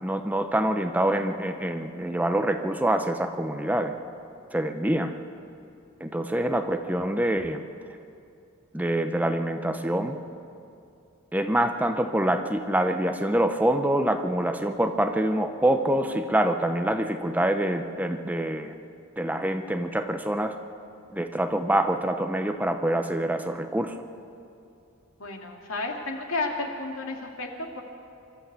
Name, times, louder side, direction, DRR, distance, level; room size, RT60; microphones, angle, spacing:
voice 1, 0.0-3.9 4.5-5.1 6.0-7.6 8.7-10.2 11.3-18.7 19.2-20.5 21.1-24.0, right 1 dB, 5° right, 7 dB, 0.7 m, -25 dB
voice 2, 25.2-27.8, left 3 dB, 75° left, 1 dB, 2.7 m, -32 dB
24.5 x 13.0 x 8.2 m, 2.5 s
head